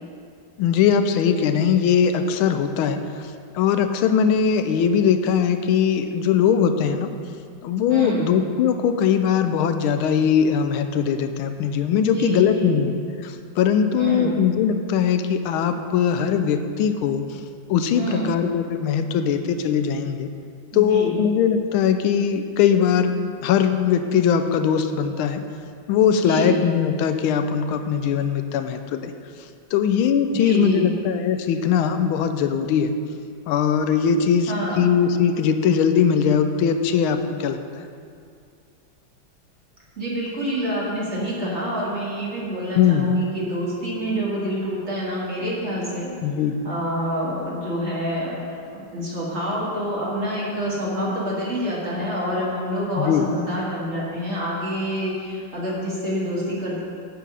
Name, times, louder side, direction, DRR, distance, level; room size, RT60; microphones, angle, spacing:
voice 1, 0.6-3.0 3.5-7.1 7.6-13.0 13.2-17.2 17.7-20.3 20.7-23.2 23.4-25.4 25.9-29.1 29.7-32.9 33.5-37.8 42.8-43.1 46.2-46.6 53.0-53.2, left 7 dB, 90° left, 8 dB, 1.5 m, -20 dB
voice 2, 7.9-8.3 12.0-12.8 13.9-14.4 17.9-18.4 20.7-21.2 26.1-26.6 30.3-30.9 34.5-34.8 40.0-46.1 46.6-48.4 48.7-56.8, equal, 35° right, -6 dB, 2.1 m, -27 dB
8.3 x 7.5 x 5.6 m, 2.3 s
omnidirectional pair, 2.2 m